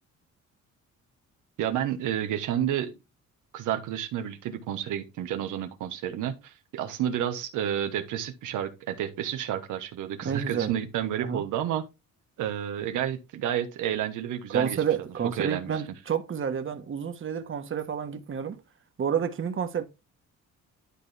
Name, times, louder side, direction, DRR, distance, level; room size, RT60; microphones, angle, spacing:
voice 1, 1.6-2.9 3.5-11.8 12.4-14.8 15.4-15.7, right 10 dB, 85° right, 1.2 m, -30 dB
voice 2, 10.2-10.7 11.2-11.4 14.5-18.6 19.0-19.8, right 7 dB, 40° right, 1.3 m, -29 dB
11.5 x 4.0 x 3.4 m
cardioid pair, 90°, 30 cm